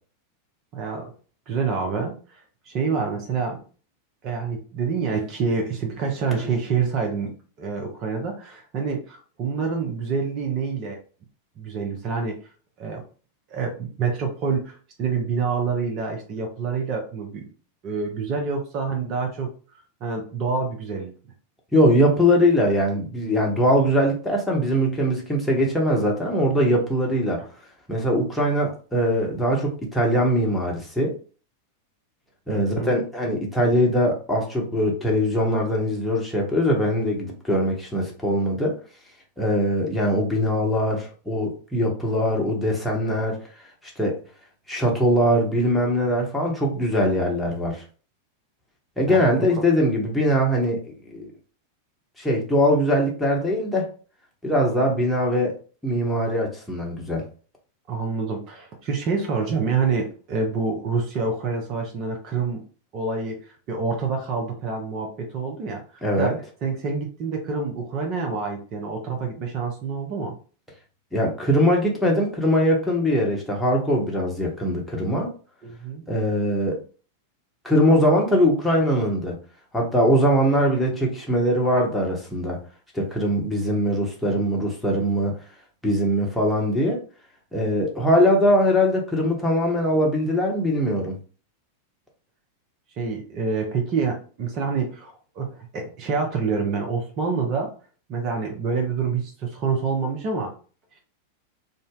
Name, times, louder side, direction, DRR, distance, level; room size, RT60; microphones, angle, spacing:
voice 1, 0.7-1.1 1.5-2.1 2.7-3.6 4.2-7.3 7.6-11.0 11.6-12.4 12.8-13.0 13.5-17.5 17.8-19.5 20.0-21.1 32.5-33.0 49.1-49.2 57.9-62.6 62.9-63.4 63.7-66.3 66.6-70.3 75.6-76.0 93.0-97.7 98.1-100.5, right 5 dB, 35° right, 2 dB, 0.7 m, -27 dB
voice 2, 21.7-27.4 27.9-31.1 32.5-38.7 39.4-43.4 44.0-44.2 44.7-47.8 49.0-50.8 51.1-51.3 52.2-53.9 54.4-55.5 55.8-57.2 66.0-66.3 71.1-75.3 76.1-76.8 77.6-79.4 79.7-82.6 82.9-85.3 85.8-87.0 87.5-91.2, equal, 5° left, -2 dB, 1.0 m, -21 dB
2.6 x 2.1 x 3.6 m, 0.38 s
figure-of-eight pair, 90°, 0 cm